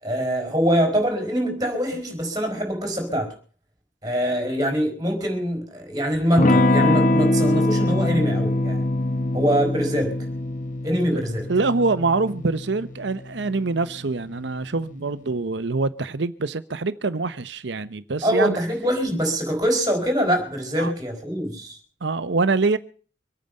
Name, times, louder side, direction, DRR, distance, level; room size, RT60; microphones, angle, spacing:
voice 1, 0.0-3.3 4.0-8.8 9.3-10.3 10.8-11.5 18.2-21.8, equal, 20° right, 5.2 m, -24 dB
Electric guitar / Strum, 6.4-14.7, left 1 dB, 45° left, 1.1 m, -23 dB
voice 2, 11.5-18.6 20.8-20.9 22.0-22.8, right 3 dB, 65° right, 0.8 m, -24 dB
25.0 x 9.1 x 5.3 m
head